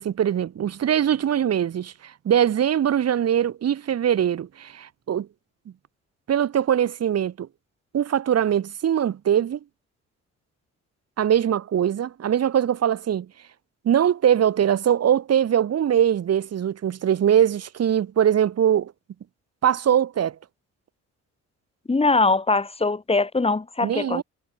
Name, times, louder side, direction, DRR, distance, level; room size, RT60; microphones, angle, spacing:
voice 1, 0.0-5.3 6.3-7.5 7.9-9.6 11.2-13.3 13.9-18.9 19.6-20.4 23.8-24.2, right 9 dB, 55° right, 1.9 m, -22 dB
voice 2, 21.9-24.2, left 3 dB, 20° left, 1.8 m, -22 dB
cardioid pair, 90°, 30 cm